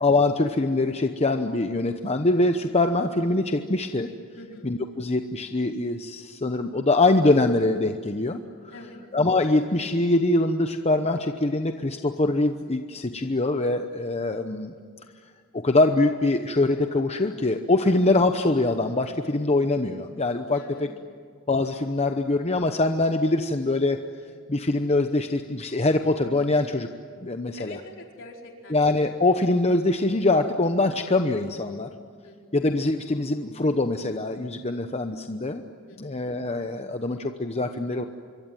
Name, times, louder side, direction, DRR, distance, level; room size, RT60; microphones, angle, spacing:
voice 1, 0.0-4.1 4.6-8.4 8.6-8.7 9.1-14.7 15.5-20.9 21.5-24.0 24.5-26.9 27.2-27.7 28.7-31.9 32.5-35.6 36.0-38.1, left 2 dB, 30° left, 6 dB, 0.9 m, -23 dB
voice 2, 4.3-4.7 8.7-9.0 20.5-21.0 26.5-26.7 27.6-28.8 32.2-32.6 35.9-36.3, left 1 dB, 65° left, 1 dB, 4.6 m, -45 dB
26.0 x 23.5 x 9.2 m, 2.1 s
head